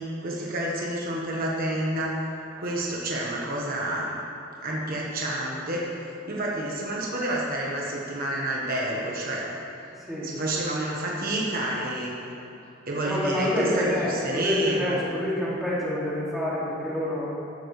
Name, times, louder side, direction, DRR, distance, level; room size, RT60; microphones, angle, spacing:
voice 1, 0.0-2.2 2.6-4.2 4.6-5.9 6.3-9.5 10.2-12.1 12.9-15.0, right 1 dB, 50° right, -3 dB, 1.4 m, -29 dB
voice 2, 10.0-10.3 13.0-17.3, left 1 dB, ahead, -8 dB, 2.4 m, -27 dB
12.0 x 10.5 x 3.3 m, 2.8 s
head